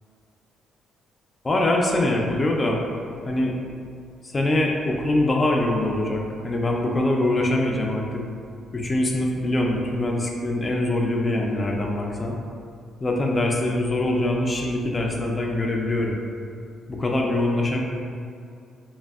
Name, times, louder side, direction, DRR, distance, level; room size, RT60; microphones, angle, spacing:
voice 1, 1.4-2.8 3.3-3.6 4.2-8.2 8.7-12.4 13.0-16.2 16.9-17.8, left 1 dB, 30° left, 0 dB, 0.3 m, -23 dB
3.1 x 2.0 x 2.3 m, 2.3 s
cardioid pair, 90°, 0 cm